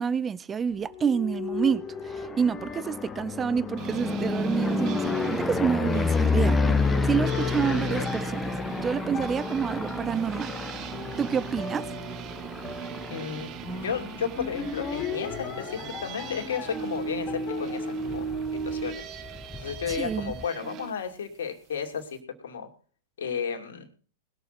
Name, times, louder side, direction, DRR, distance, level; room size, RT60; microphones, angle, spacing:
voice 1, 0.0-8.5 8.8-10.5 11.2-11.9 19.9-20.3, right 7 dB, 20° right, 0.6 m, -28 dB
sound 1, 0.7-19.3, left 5 dB, 35° left, 3.2 m, -38 dB
sound 2, 1.8-15.8 16.3-16.7 17.0-17.1 17.4-17.5 17.6-20.5, left 4 dB, 15° left, 1.0 m, -30 dB
sound 3, 3.8-20.9, right 7 dB, 40° right, 1.3 m, -37 dB
voice 2, 13.1-18.3 18.6-19.0 19.6-22.2 22.4-22.7 23.2-23.9, left 7 dB, 75° left, 2.7 m, -33 dB
20.0 x 6.9 x 5.9 m
hypercardioid pair, 110°, 0 cm